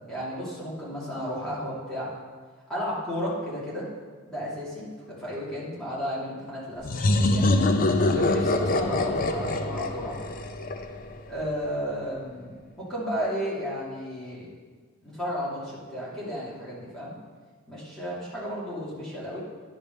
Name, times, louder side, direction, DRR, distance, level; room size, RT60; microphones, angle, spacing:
voice 1, 0.1-2.1 2.7-3.9 4.3-7.6 8.1-10.2 11.3-14.5 15.0-17.2 17.7-19.4, equal, 5° left, -9 dB, 2.6 m, -33 dB
sound 1, 6.8-11.4, left 2 dB, 40° left, 0.5 m, -24 dB
10.5 x 5.2 x 5.4 m, 1.5 s
head